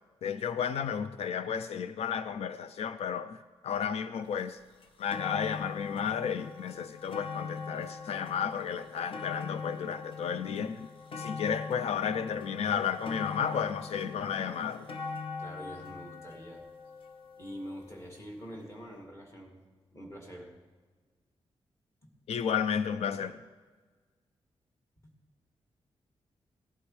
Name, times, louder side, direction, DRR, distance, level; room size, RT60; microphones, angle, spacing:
voice 1, 0.2-4.6 5.0-10.9 11.2-14.9 22.3-23.4, left 7 dB, 85° left, 12 dB, 0.4 m, -32 dB
sound 1, 4.4-4.5 4.8-18.0 18.8-18.9, left 5 dB, 60° left, 1.1 m, -42 dB
voice 2, 15.4-16.6 17.4-19.5 19.9-20.5, equal, 25° left, 0 dB, 2.2 m, -45 dB
17.5 x 11.5 x 3.2 m, 1.4 s
wide cardioid pair, 155°, 10 cm